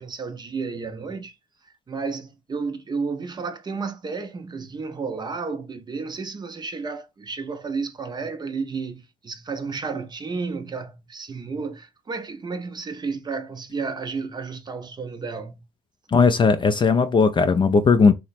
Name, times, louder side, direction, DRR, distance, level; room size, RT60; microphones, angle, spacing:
voice 1, 0.0-1.3 1.9-15.6, right 4 dB, 25° right, 0.6 m, -32 dB
voice 2, 16.1-18.1, left 5 dB, 30° left, 0.4 m, -17 dB
2.9 x 2.0 x 4.1 m
cardioid pair, 110°, 17 cm